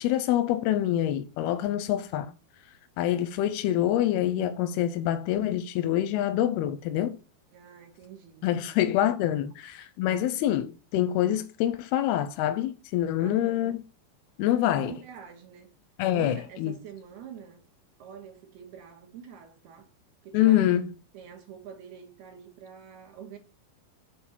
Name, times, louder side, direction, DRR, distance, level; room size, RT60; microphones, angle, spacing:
voice 1, 0.0-2.3 3.0-7.2 8.4-13.8 14.4-14.9 16.0-16.7 20.3-20.9, left 12 dB, 90° left, 2.6 m, -26 dB
voice 2, 7.5-8.8 13.2-13.8 14.7-15.7 16.1-17.6 18.0-19.9 20.2-20.7 21.1-23.4, right 8 dB, 80° right, 3.6 m, -45 dB
8.1 x 4.6 x 7.1 m
omnidirectional pair, 4.5 m